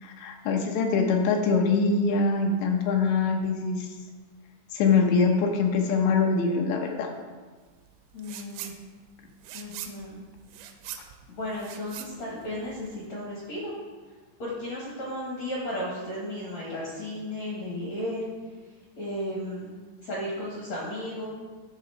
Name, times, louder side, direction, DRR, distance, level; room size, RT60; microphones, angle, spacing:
voice 1, 0.0-3.9 4.7-7.1, left 4 dB, 75° left, 3 dB, 2.8 m, -23 dB
voice 2, 8.1-8.7 9.5-10.2 11.3-13.7 14.4-18.2 19.0-19.7 20.0-21.3, left 1 dB, 60° left, -6 dB, 1.8 m, -34 dB
sound 1, 8.2-8.8 9.1-13.0, right 11 dB, 85° right, 3.0 m, -42 dB
12.0 x 4.2 x 5.8 m, 1.4 s
omnidirectional pair, 5.6 m